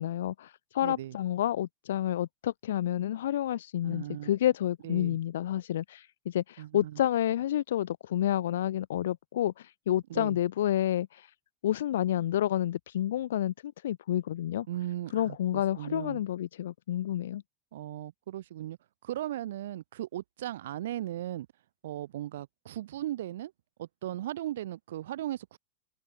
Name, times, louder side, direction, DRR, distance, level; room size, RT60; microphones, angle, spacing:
voice 1, 0.0-11.3 11.6-14.7 15.1-17.4, left 12 dB, 85° left, 0.3 m, -29 dB
voice 2, 0.8-1.1 3.8-4.3 4.8-5.2 6.6-7.0 10.1-10.4 14.7-16.2 17.7-18.8 19.0-21.5 21.8-23.5 23.8-25.6, right 13 dB, 80° right, 0.7 m, -37 dB
hypercardioid pair, 110°, 0 cm